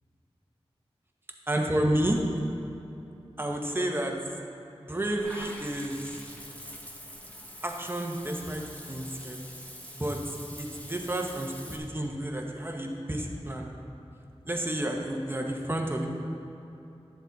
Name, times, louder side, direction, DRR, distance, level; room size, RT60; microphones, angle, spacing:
voice 1, 1.5-2.2 3.4-4.1 4.8-6.0 7.6-9.4 10.0-10.2 10.6-13.7 14.4-16.1, right 1 dB, 20° right, 0 dB, 1.2 m, -30 dB
Water / Bathtub (filling or washing), 5.2-11.8, equal, 15° left, 1.2 m, -45 dB
11.5 x 7.2 x 4.1 m, 2.9 s
wide cardioid pair, 55°, 11 cm